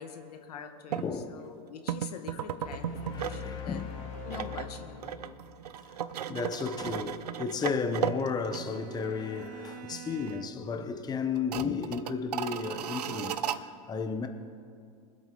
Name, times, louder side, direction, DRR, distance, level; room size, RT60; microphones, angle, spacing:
voice 1, 0.0-3.9 4.2-5.4, left 6 dB, 80° left, 1.2 m, -44 dB
voice 2, 0.9-1.4 2.3-3.9 6.3-13.4 13.9-14.3, left 5 dB, 20° left, 1.0 m, -33 dB
sound 1, 0.9-1.1 1.9-3.5 3.8-9.1 9.4-9.5 9.9-10.4 10.7-10.8 11.3-13.6, right 9 dB, 90° right, 0.6 m, -35 dB
sound 2, 2.6-5.9, left 7 dB, 40° left, 3.4 m, -42 dB
Bowed string instrument, 7.7-10.8, right 13 dB, 45° right, 0.6 m, -48 dB
22.5 x 8.1 x 3.9 m
hypercardioid pair, 105°, 20 cm